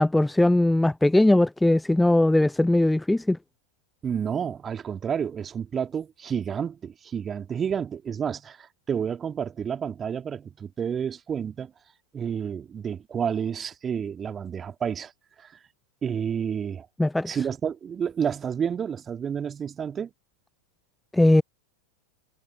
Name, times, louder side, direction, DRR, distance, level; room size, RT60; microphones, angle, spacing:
voice 1, 0.0-3.4 17.0-17.4 21.1-21.4, left 1 dB, 5° left, 0.3 m, -20 dB
voice 2, 4.0-11.7 12.1-15.1 15.4-15.6 16.0-16.9 17.3-20.1, right 7 dB, 20° right, 2.5 m, -30 dB
figure-of-eight pair, 90°, 0 cm